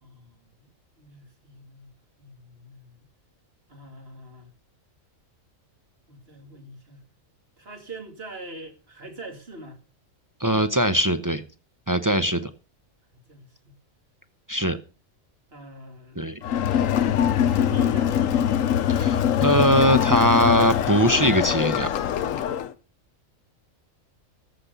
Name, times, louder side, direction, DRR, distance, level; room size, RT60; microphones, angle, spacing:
voice 1, 0.0-0.7 1.0-1.9 2.2-2.9 3.7-4.5 6.1-7.1 7.6-9.8 13.1-13.8 15.5-16.2 16.7-17.1 17.4-18.3, right 1 dB, 45° right, 2.5 m, -43 dB
voice 2, 10.4-11.4 11.9-12.5 14.5-14.8 16.2-16.4 18.9-21.9, equal, 30° right, 0.4 m, -21 dB
Crowd, 16.4-22.7, left 9 dB, 80° left, 1.1 m, -23 dB
14.0 x 5.9 x 6.8 m
omnidirectional pair, 1.4 m